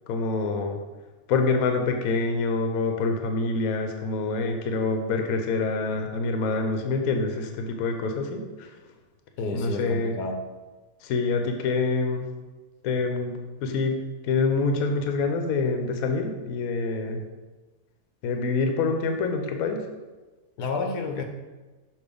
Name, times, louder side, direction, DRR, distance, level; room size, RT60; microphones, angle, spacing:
voice 1, 0.1-0.8 1.3-8.7 9.5-10.1 11.0-12.3 12.8-14.0 14.2-17.2 18.2-19.8, left 3 dB, 70° left, 5 dB, 1.1 m, -26 dB
voice 2, 9.4-10.3 20.6-21.2, left 3 dB, 90° left, 4 dB, 1.3 m, -30 dB
6.2 x 2.9 x 5.1 m, 1.2 s
omnidirectional pair, 1.6 m